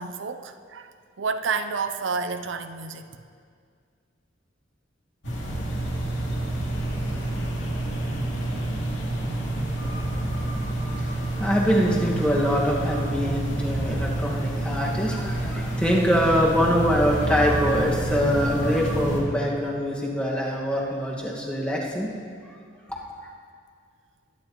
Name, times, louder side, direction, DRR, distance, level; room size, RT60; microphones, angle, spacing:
voice 1, 0.0-3.1, right 4 dB, 85° right, 9 dB, 0.6 m, -30 dB
sound 1, 5.2-19.2, right 1 dB, 85° left, 2.6 m, -28 dB
voice 2, 11.0-22.1, equal, 5° left, -4 dB, 1.8 m, -24 dB
20.5 x 10.5 x 3.1 m, 2.2 s
head